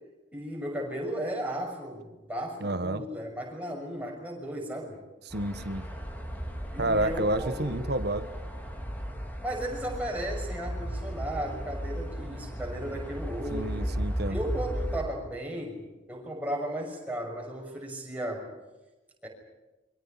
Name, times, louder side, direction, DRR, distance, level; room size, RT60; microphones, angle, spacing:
voice 1, 0.3-5.0 6.7-7.8 9.4-13.9 14.3-18.5 19.2-19.3, right 1 dB, 10° right, -1 dB, 6.4 m, -35 dB
voice 2, 2.6-3.0 5.3-5.8 6.8-8.3 13.5-14.4, right 1 dB, 55° right, 11 dB, 1.4 m, -29 dB
sound 1, 5.3-15.0, equal, 10° left, 3.5 m, -35 dB
28.5 x 24.5 x 5.9 m, 1.1 s
head